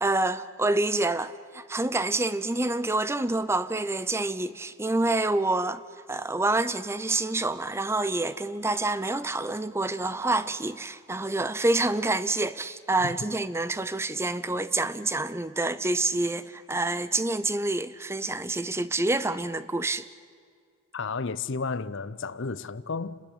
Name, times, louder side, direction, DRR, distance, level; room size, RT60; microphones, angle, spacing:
voice 1, 0.0-5.8 6.1-20.1, right 2 dB, 10° right, 0.5 m, -27 dB
voice 2, 20.9-23.2, left 4 dB, 55° left, 0.7 m, -32 dB
29.5 x 13.5 x 9.9 m
head